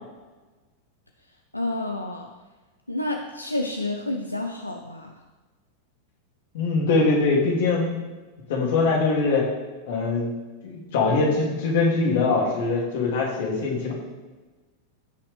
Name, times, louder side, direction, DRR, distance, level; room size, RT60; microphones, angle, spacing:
voice 1, 1.5-2.3 2.9-5.2, left 2 dB, 85° left, 3 dB, 0.6 m, -29 dB
voice 2, 6.5-7.9 8.5-9.4 9.9-10.3 10.6-13.9, left 3 dB, 55° left, -1 dB, 2.6 m, -22 dB
16.5 x 5.8 x 3.4 m, 1.2 s
figure-of-eight pair, 90°, 0 cm